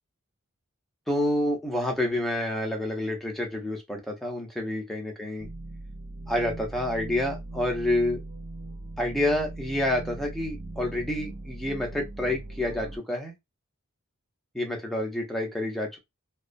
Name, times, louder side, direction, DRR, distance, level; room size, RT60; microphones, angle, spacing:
voice 1, 1.1-5.5 6.3-8.2 9.0-13.3 14.5-16.0, left 1 dB, ahead, 0.6 m, -28 dB
sound 1, 5.4-13.0, right 2 dB, 70° right, 0.6 m, -40 dB
2.3 x 2.1 x 2.5 m
head